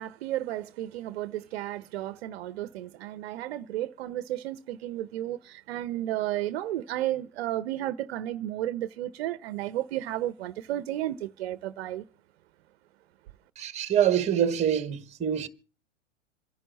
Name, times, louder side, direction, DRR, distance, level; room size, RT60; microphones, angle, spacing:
voice 1, 0.0-12.0, right 13 dB, 55° right, 0.8 m, -33 dB
voice 2, 13.6-15.5, right 9 dB, 20° right, 1.4 m, -25 dB
27.0 x 11.0 x 4.0 m
hypercardioid pair, 115°, 36 cm